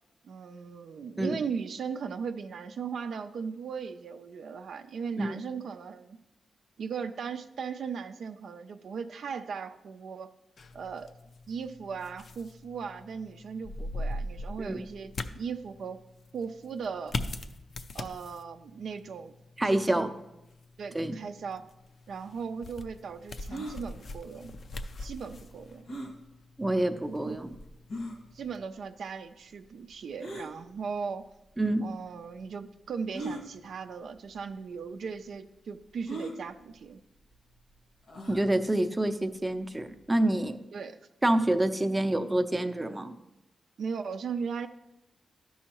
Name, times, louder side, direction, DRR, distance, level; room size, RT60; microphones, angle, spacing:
voice 1, 0.2-6.2 6.8-10.3 10.7-11.1 11.5-16.0 16.3-17.2 17.9-19.3 19.6-20.1 20.8-21.6 22.1-24.5 25.0-25.8 27.2-27.4 28.3-31.2 31.8-37.0 40.7-41.0 43.8-44.7, right 6 dB, 75° right, 8 dB, 0.4 m, -37 dB
sound 1, 10.6-28.6, left 2 dB, 55° left, 0.4 m, -42 dB
voice 2, 19.6-20.1 20.9-21.2 26.6-27.5 31.6-31.8 38.3-40.6 41.2-43.1, right 1 dB, 15° right, 7 dB, 0.5 m, -27 dB
sound 2, 23.5-23.8 25.9-26.2 26.9-27.0 27.9-28.2 30.2-30.5 31.6-31.7 33.1-33.4 34.4-34.5 34.8-34.9 36.1-36.4 38.1-38.4, right 1 dB, 85° left, 1.5 m, -37 dB
12.5 x 5.4 x 2.9 m, 0.92 s
cardioid pair, 95°, 0 cm